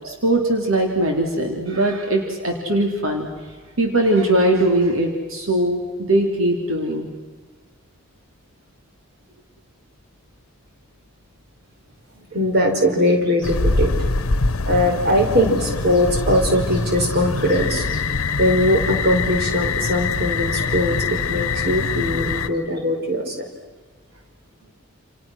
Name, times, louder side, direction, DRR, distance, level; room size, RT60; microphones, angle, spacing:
voice 1, 0.0-3.3 3.8-7.1, right 1 dB, 70° right, 2 dB, 3.3 m, -20 dB
voice 2, 12.3-13.9 14.7-18.0 18.4-23.4, left 1 dB, 50° right, 3 dB, 4.9 m, -20 dB
sound 1, 13.4-22.5, left 4 dB, 80° left, 1.1 m, -24 dB
29.0 x 29.0 x 6.3 m, 1.3 s
head